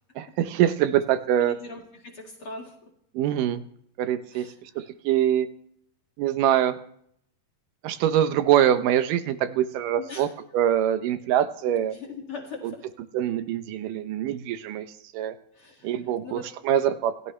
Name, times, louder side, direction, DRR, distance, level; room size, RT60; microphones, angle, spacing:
voice 1, 0.2-1.5 3.1-3.6 4.0-5.5 6.2-6.8 7.8-10.3 10.5-11.9 13.1-14.9 15.1-15.3 15.8-16.4 16.7-17.1, right 11 dB, 75° right, 11 dB, 2.3 m, -24 dB
voice 2, 1.4-2.9 4.3-4.9 10.0-10.3 11.8-12.9 15.5-16.5, left 4 dB, 40° left, -1 dB, 2.7 m, -41 dB
28.0 x 15.0 x 3.3 m, 0.69 s
omnidirectional pair, 4.1 m